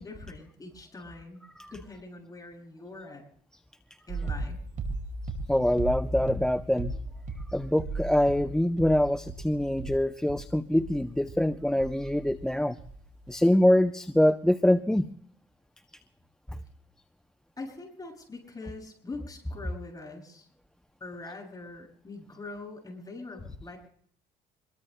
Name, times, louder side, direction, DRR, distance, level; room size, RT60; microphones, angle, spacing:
voice 1, 0.0-1.4 1.7-3.2 4.1-4.6 17.6-20.5 21.0-23.9, left 3 dB, 20° left, 2 dB, 7.2 m, -43 dB
sound 1, 4.1-12.5 12.8-13.3, right 3 dB, 50° right, 5.3 m, -37 dB
voice 2, 5.5-7.0 7.5-12.8 13.3-15.1, left 1 dB, 5° left, 10 dB, 0.5 m, -24 dB
26.5 x 22.5 x 2.2 m, 0.63 s
cardioid pair, 110°, 17 cm